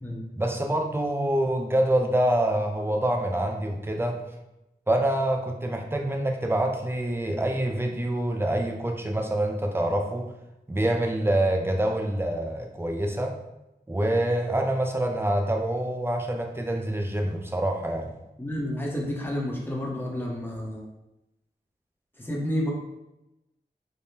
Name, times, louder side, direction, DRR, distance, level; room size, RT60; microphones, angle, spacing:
voice 1, 0.4-4.2 4.9-10.3 10.7-13.4 13.9-18.2, right 1 dB, 15° right, 3 dB, 0.5 m, -26 dB
voice 2, 18.4-20.8 22.2-22.7, equal, 10° left, -3 dB, 0.8 m, -30 dB
3.4 x 2.1 x 2.7 m, 0.92 s
wide cardioid pair, 45°, 17 cm